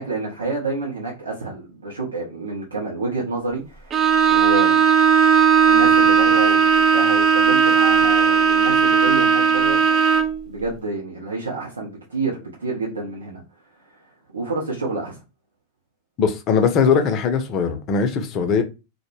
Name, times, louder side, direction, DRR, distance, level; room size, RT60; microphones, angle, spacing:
voice 1, 0.0-4.9 5.7-10.0 10.4-13.4 13.9-14.0 14.3-15.2, right 3 dB, 75° right, 0.7 m, -29 dB
Bowed string instrument, 3.9-10.4, right 6 dB, 25° right, 0.3 m, -16 dB
voice 2, 16.2-18.6, left 6 dB, 35° left, 0.5 m, -20 dB
2.1 x 2.1 x 3.1 m
figure-of-eight pair, 90°, 0 cm